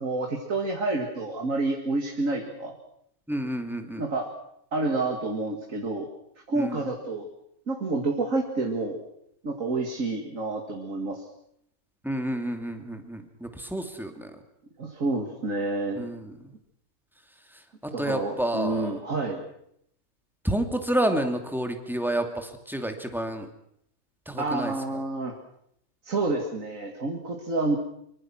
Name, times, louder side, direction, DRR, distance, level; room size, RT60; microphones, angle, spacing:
voice 1, 0.0-2.7 4.0-4.3 4.7-6.1 6.5-7.3 7.7-9.0 9.4-11.2 14.8-16.1 17.9-19.4 24.4-25.4 26.0-27.8, right 2 dB, 60° right, 2 dB, 2.6 m, -29 dB
voice 2, 3.3-4.0 6.6-6.7 12.0-14.3 16.0-16.2 18.0-18.9 20.4-23.5 24.3-24.7, right 1 dB, ahead, 5 dB, 2.6 m, -29 dB
24.5 x 24.5 x 6.2 m, 0.72 s
omnidirectional pair, 1.6 m